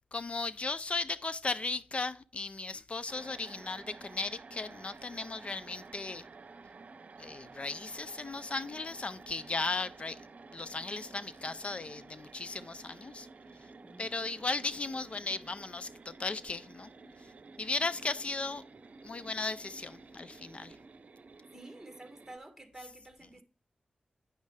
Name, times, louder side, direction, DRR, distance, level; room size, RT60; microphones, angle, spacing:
voice 1, 0.1-6.2 7.2-10.2 10.5-13.3 14.0-16.9 17.6-18.6 19.0-20.8, left 3 dB, 45° left, 0.4 m, -36 dB
sound 1, 3.1-22.4, right 4 dB, 60° right, 0.7 m, -52 dB
voice 2, 13.8-14.4 21.5-23.4, right 1 dB, 5° right, 1.8 m, -50 dB
9.4 x 6.4 x 3.4 m
wide cardioid pair, 75°, 3 cm